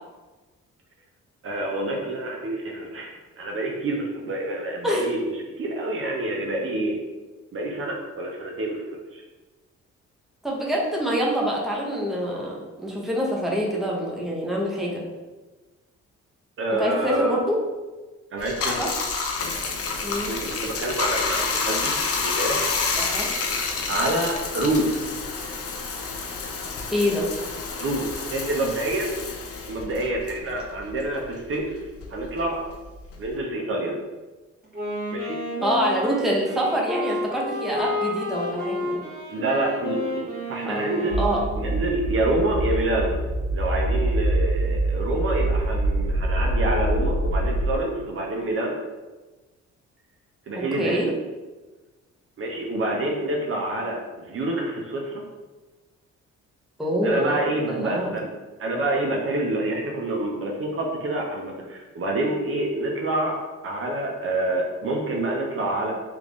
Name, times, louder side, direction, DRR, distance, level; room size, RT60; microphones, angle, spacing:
voice 1, 1.4-7.0 7.5-8.8 9.1-9.2 16.6-17.4 18.3-18.7 20.2-21.9 22.2-22.7 23.9-24.9 27.8-28.0 28.3-29.2 29.7-31.8 32.1-32.6 33.2-33.9 35.1-35.4 39.3-41.2 41.6-43.2 43.5-48.8 50.5-51.1 52.4-55.2 57.0-58.3 58.6-63.4 63.6-65.9, right 1 dB, 45° right, -1 dB, 0.6 m, -27 dB
voice 2, 10.4-15.0 16.7-17.6 18.8-18.9 20.0-20.3 23.0-23.3 26.9-27.3 35.6-39.0 40.6-40.9 41.2-41.4 50.6-51.1 56.8-57.4 57.7-58.1, equal, ahead, -3 dB, 0.7 m, -25 dB
Bathtub (filling or washing), 18.4-31.2 31.5-33.4, left 4 dB, 50° left, 0.5 m, -29 dB
Wind instrument woodwind instrument, 34.6-41.8, left 1 dB, 30° right, 1.3 m, -30 dB
sound 1, 41.1-47.8, right 1 dB, 75° left, 0.8 m, -24 dB
3.1 x 2.5 x 3.5 m, 1.2 s
cardioid pair, 90°, 30 cm